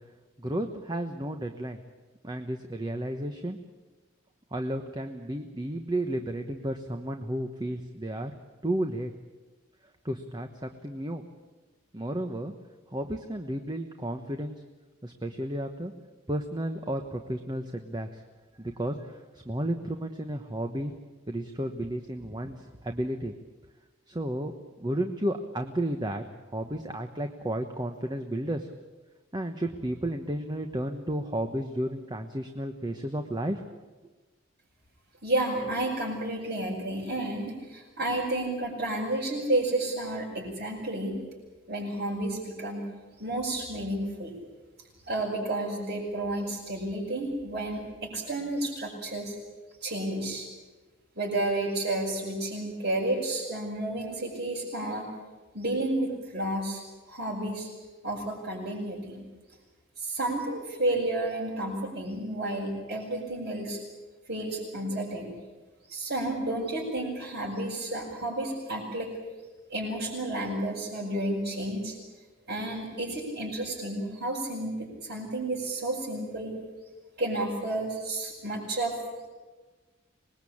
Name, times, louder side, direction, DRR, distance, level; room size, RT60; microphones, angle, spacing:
voice 1, 0.4-1.8 2.2-3.6 4.5-8.3 8.6-9.1 10.0-11.2 11.9-12.5 12.9-14.5 15.0-15.9 16.3-18.2 18.6-20.9 21.3-23.3 24.1-24.5 24.8-26.2 26.5-28.7 29.3-33.6, right 1 dB, 20° right, 6 dB, 1.2 m, -32 dB
voice 2, 35.2-41.2 41.7-42.8 43.2-44.3 45.1-49.3 49.8-50.5 51.2-55.1 55.5-57.7 58.0-59.2 60.0-63.8 64.3-65.3 65.9-69.1 69.7-72.0 72.5-76.5 77.2-78.9, right 1 dB, 55° right, -8 dB, 6.8 m, -31 dB
26.0 x 20.5 x 8.7 m, 1.3 s
head